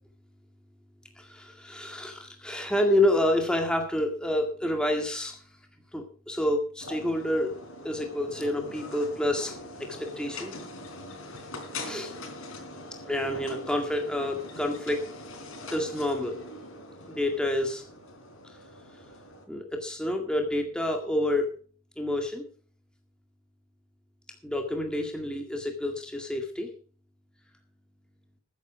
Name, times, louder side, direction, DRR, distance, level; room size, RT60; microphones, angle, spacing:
voice 1, 1.2-5.4 5.9-7.5 7.8-9.6 10.0-10.5 11.7-12.1 13.0-15.0 15.7-16.4 17.1-17.8 19.5-21.5 22.0-22.4 24.4-26.7, left 1 dB, 5° left, 3 dB, 1.9 m, -28 dB
sound 1, 6.8-19.4, left 2 dB, 75° left, 3.9 m, -42 dB
14.5 x 9.3 x 4.8 m, 0.41 s
head